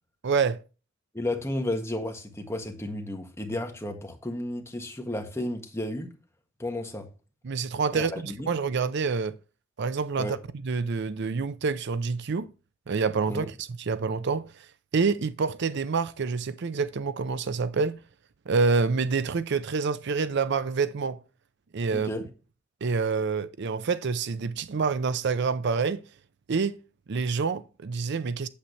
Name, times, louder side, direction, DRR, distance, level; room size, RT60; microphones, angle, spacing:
voice 1, 0.2-0.6 7.4-9.4 9.8-10.4 10.6-12.5 12.9-14.7 14.9-18.0 18.5-21.2 21.7-22.1 22.8-26.0 26.5-26.8 27.1-28.5, right 4 dB, 60° right, 0.5 m, -27 dB
voice 2, 1.1-6.1 6.6-7.1 7.9-8.5 10.2-10.4 13.3-13.5 21.9-22.3, left 1 dB, 15° left, 1.6 m, -33 dB
8.6 x 7.4 x 3.2 m
head